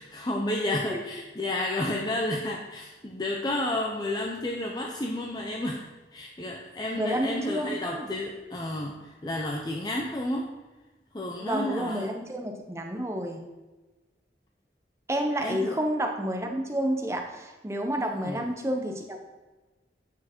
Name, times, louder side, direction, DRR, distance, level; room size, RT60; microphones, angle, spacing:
voice 1, 0.0-10.5 11.1-12.1 15.4-15.8 18.0-18.4, left 1 dB, 25° left, 0 dB, 0.5 m, -31 dB
voice 2, 7.0-8.2 11.4-13.4 15.1-19.2, equal, 15° right, 4 dB, 0.7 m, -30 dB
8.5 x 4.5 x 4.4 m, 1.2 s
head